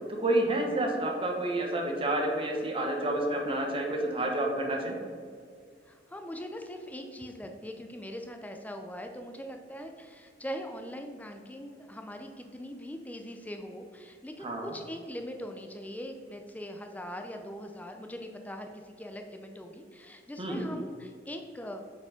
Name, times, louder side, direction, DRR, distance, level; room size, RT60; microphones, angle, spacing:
voice 1, 0.1-4.9 14.4-14.7 20.4-20.6, right 1 dB, 30° right, 0 dB, 1.2 m, -29 dB
voice 2, 5.8-21.8, equal, 10° left, 5 dB, 0.4 m, -41 dB
7.0 x 4.8 x 5.0 m, 2.2 s
head